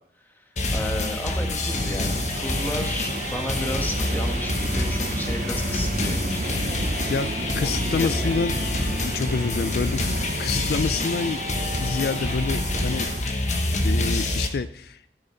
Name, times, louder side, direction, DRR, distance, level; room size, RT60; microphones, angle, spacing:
sound 1, 0.6-14.5, left 2 dB, 40° left, 1.2 m, -27 dB
voice 1, 0.7-7.0 7.6-8.4, left 1 dB, 10° left, 2 dB, 1.4 m, -34 dB
sound 2, 1.7-13.2, right 3 dB, 40° right, 0.6 m, -33 dB
voice 2, 7.5-8.5 9.0-11.4 11.8-13.1 13.8-15.1, left 5 dB, 60° left, 13 dB, 0.4 m, -27 dB
15.5 x 6.6 x 4.3 m, 0.73 s
head